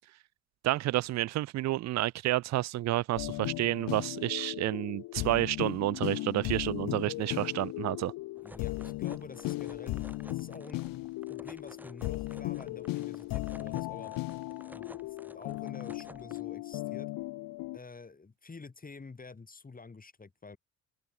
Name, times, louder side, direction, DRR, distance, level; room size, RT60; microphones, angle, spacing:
voice 1, 0.6-8.1, right 15 dB, 45° right, 0.6 m, -30 dB
sound 1, 3.2-17.8, left 19 dB, 60° left, 0.8 m, -37 dB
voice 2, 8.4-14.1 14.7-17.1 17.7-20.6, left 4 dB, 20° left, 2.2 m, -49 dB
sound 2, 8.4-16.4, right 1 dB, 5° right, 3.5 m, -53 dB
open air
hypercardioid pair, 60°, 38 cm